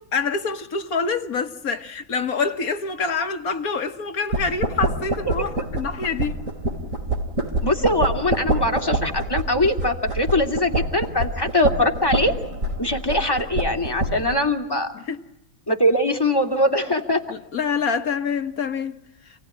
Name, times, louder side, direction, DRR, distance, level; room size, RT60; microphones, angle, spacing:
voice 1, 0.1-6.4 15.1-15.2 17.3-18.9, left 5 dB, 50° left, 1.5 m, -26 dB
sound 1, 4.3-14.4, right 2 dB, 40° right, 3.3 m, -26 dB
voice 2, 7.6-12.3 12.8-14.9 15.7-17.2, left 1 dB, 10° left, 2.6 m, -22 dB
28.5 x 19.0 x 9.9 m
omnidirectional pair, 2.2 m